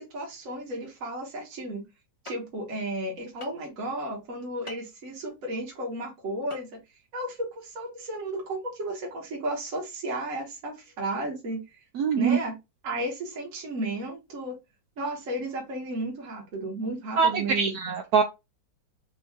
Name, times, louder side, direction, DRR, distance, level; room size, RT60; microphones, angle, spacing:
voice 1, 0.0-1.8 2.2-6.7 7.1-11.8 12.2-12.5 12.8-14.6 15.0-17.9, right 1 dB, 45° right, 1.7 m, -33 dB
sound 1, 2.3-2.4 3.4-3.7 4.7-4.9 6.5-6.6 7.0-7.1, left 1 dB, 20° left, 0.8 m, -41 dB
voice 2, 11.9-12.4 17.2-18.2, right 6 dB, 75° right, 0.9 m, -23 dB
4.4 x 2.6 x 3.6 m
omnidirectional pair, 2.1 m